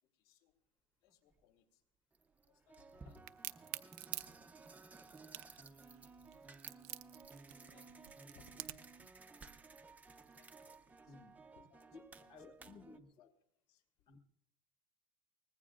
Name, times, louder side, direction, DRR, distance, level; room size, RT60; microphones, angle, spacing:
voice 1, 0.0-0.6 1.0-1.8 2.4-3.7 4.0-4.5 4.9-5.6 6.1-6.5 7.4-9.2 10.3-11.2 11.5-11.9 12.2-12.3 12.6-12.8 13.2-13.3 13.7-14.2, left 8 dB, 75° left, 4 dB, 3.0 m, -70 dB
sound 1, 1.3-1.4 2.1-13.0, right 4 dB, 10° right, 0.5 m, -57 dB
Crack, 3.3-9.0, right 18 dB, 80° right, 0.7 m, -46 dB
voice 2, 12.3-13.1 14.1-14.2, left 4 dB, 25° left, 5 dB, 1.1 m, -56 dB
24.0 x 20.0 x 2.5 m, 0.70 s
cardioid pair, 175°, 19 cm